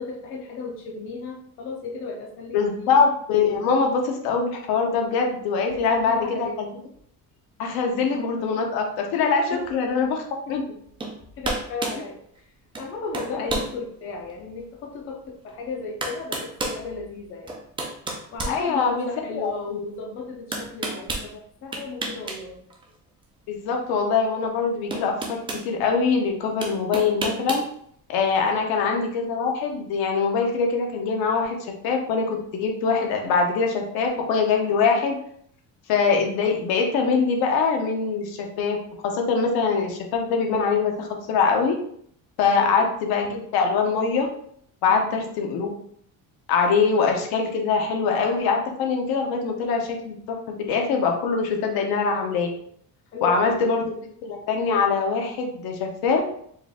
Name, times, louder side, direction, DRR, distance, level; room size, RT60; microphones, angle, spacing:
voice 1, 0.0-3.0 5.7-6.6 9.5-9.7 10.5-10.6 11.3-12.2 12.8-17.6 18.3-22.6 28.4-28.6 42.5-42.9 44.9-45.2 53.1-53.8, left 3 dB, 35° left, 0 dB, 0.5 m, -35 dB
voice 2, 2.5-6.7 7.6-10.2 10.5-10.6 13.3-13.6 18.5-19.1 19.3-19.8 23.5-25.4 25.6-27.6 28.1-31.6 31.8-35.2 35.9-38.8 39.0-41.8 42.4-44.3 44.8-45.7 46.5-50.4 50.7-52.5 53.2-53.9 54.2-56.2, left 5 dB, 80° left, 2 dB, 0.9 m, -23 dB
sound 1, 11.0-11.2 11.4-12.0 12.7-12.9 13.1-13.7 14.3-14.4 15.5-15.6 16.0-16.8 17.5-19.1 20.5-21.3 21.7-22.4 22.7-22.8 24.3-24.4 24.9-25.7 26.6-27.7, right 2 dB, 15° right, 0.4 m, -30 dB
4.5 x 2.5 x 3.5 m, 0.66 s
cardioid pair, 180°, 36 cm